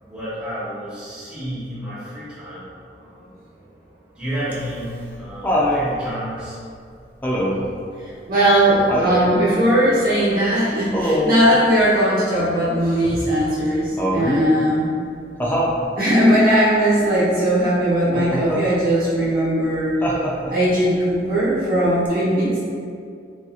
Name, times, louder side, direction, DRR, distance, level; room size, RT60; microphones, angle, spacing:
voice 1, 0.0-3.3 4.1-6.6 8.1-8.2, equal, 5° right, -13 dB, 1.0 m, -31 dB
Laughter, 4.5-5.8 7.2-7.7 8.9-9.3 10.9-11.5 14.0-14.5 15.4-15.8 18.1-18.6 20.0-20.7 22.1-22.2, equal, 10° left, 0.4 m, -22 dB
voice 2, 8.3-14.8 16.0-19.9 20.5-22.6, equal, 55° right, -9 dB, 1.0 m, -18 dB
4.0 x 2.6 x 2.4 m, 2.3 s
head